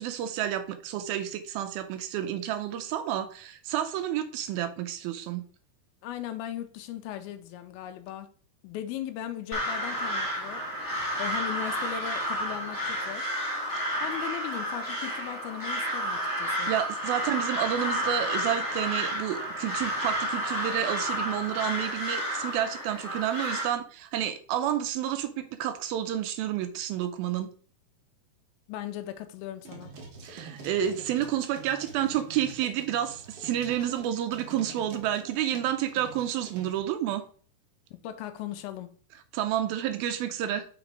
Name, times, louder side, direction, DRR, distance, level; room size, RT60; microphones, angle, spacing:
voice 1, 0.0-5.4 16.7-27.5 30.2-37.2 39.3-40.7, right 11 dB, 80° right, 2.3 m, -30 dB
voice 2, 6.0-8.3 8.6-10.6 11.2-13.3 14.0-16.7 28.7-29.9 37.9-38.9, left 11 dB, 80° left, 2.4 m, -38 dB
Crow, 9.5-23.7, equal, 30° left, 0.4 m, -31 dB
sound 1, 29.6-36.8, right 4 dB, 60° right, 1.6 m, -46 dB
6.0 x 4.1 x 5.1 m
omnidirectional pair, 4.6 m